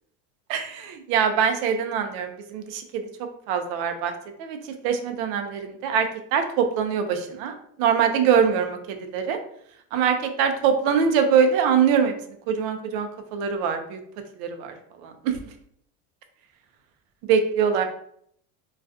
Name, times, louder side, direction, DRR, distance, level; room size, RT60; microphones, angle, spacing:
voice 1, 0.5-3.0 3.5-4.1 4.4-9.4 9.9-12.1 12.5-14.0 14.4-14.7 15.0-15.4 17.3-17.8, right 7 dB, 65° right, 6 dB, 0.6 m, -23 dB
2.3 x 2.3 x 2.4 m, 0.68 s
supercardioid pair, 115°, 45 cm